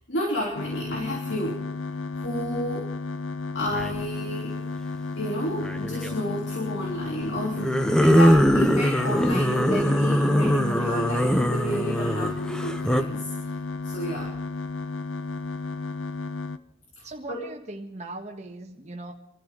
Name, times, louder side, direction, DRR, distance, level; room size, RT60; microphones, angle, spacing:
voice 1, 0.1-1.6 2.1-2.9 3.5-4.6 5.2-13.3 13.8-14.3 17.0-17.4, equal, 70° left, -3 dB, 3.3 m, -31 dB
sound 1, 0.6-16.6, left 3 dB, 85° left, 0.8 m, -33 dB
sound 2, 3.7-4.0 5.6-6.1 7.6-13.0, equal, 5° left, 0.6 m, -22 dB
voice 2, 17.0-19.1, right 2 dB, 35° right, 1 dB, 1.6 m, -39 dB
25.5 x 13.5 x 3.9 m, 0.75 s
head